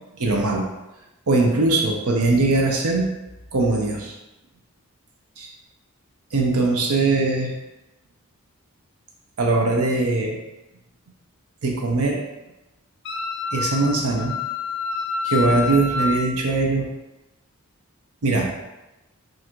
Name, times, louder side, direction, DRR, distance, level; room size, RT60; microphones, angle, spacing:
voice 1, 0.2-0.7 1.3-3.1 3.5-4.1 5.4-5.5 6.3-7.5 9.4-10.4 11.6-12.2 13.5-14.3 15.2-16.9 18.2-18.5, right 3 dB, 80° right, -1 dB, 0.7 m, -21 dB
Wind instrument woodwind instrument, 13.0-16.3, left 4 dB, 50° left, 0.5 m, -27 dB
3.8 x 2.5 x 4.4 m, 0.99 s
head